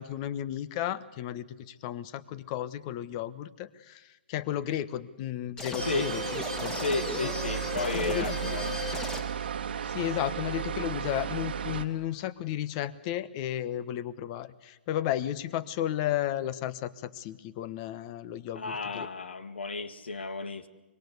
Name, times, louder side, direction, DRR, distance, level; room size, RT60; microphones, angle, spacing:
voice 1, 0.0-6.7 7.9-8.6 9.8-19.1, left 12 dB, 35° left, 1.2 m, -33 dB
sound 1, 5.6-9.5, left 4 dB, 10° left, 1.9 m, -37 dB
voice 2, 5.8-6.1 6.7-8.8 18.5-20.7, left 3 dB, 85° left, 1.9 m, -33 dB
sound 2, 5.8-11.8, right 8 dB, 70° right, 1.5 m, -34 dB
25.0 x 22.0 x 8.1 m
hypercardioid pair, 130°, 6 cm